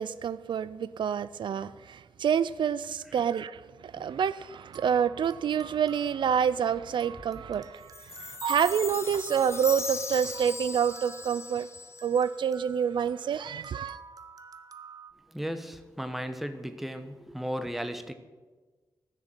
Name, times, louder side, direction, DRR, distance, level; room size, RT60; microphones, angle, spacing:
voice 1, 0.0-11.7 12.0-14.0, right 8 dB, 75° right, 0.4 m, -28 dB
sound 1, 4.5-15.1, right 5 dB, 50° right, 0.8 m, -50 dB
Chime, 7.9-12.4, left 4 dB, 35° left, 0.7 m, -38 dB
voice 2, 15.3-18.1, equal, ahead, 0.9 m, -35 dB
15.0 x 6.7 x 8.9 m
wide cardioid pair, 130°, 8 cm